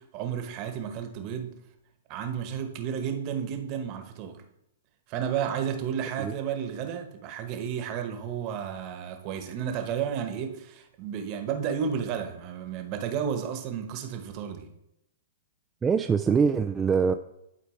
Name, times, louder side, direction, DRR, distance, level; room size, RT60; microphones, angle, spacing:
voice 1, 0.0-1.6 2.1-4.4 5.1-14.7, right 8 dB, 40° right, 6 dB, 1.2 m, -32 dB
voice 2, 15.8-17.1, right 6 dB, 15° right, 5 dB, 0.3 m, -23 dB
11.5 x 4.2 x 3.2 m, 0.83 s
hypercardioid pair, 130°, 0 cm